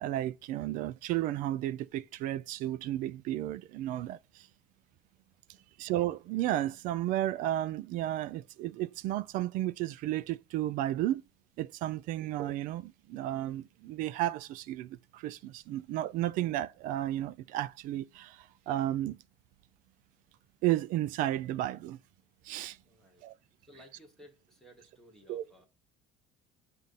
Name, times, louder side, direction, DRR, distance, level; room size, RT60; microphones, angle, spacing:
voice 1, 0.0-4.5 5.8-11.2 11.6-19.2 20.6-22.0 22.4-22.8 23.2-23.3 25.3-25.4, right 14 dB, 55° right, 0.4 m, -33 dB
voice 2, 22.8-23.3 23.6-25.7, equal, 5° left, 1.1 m, -57 dB
7.3 x 2.6 x 5.4 m
cardioid pair, 170°, 16 cm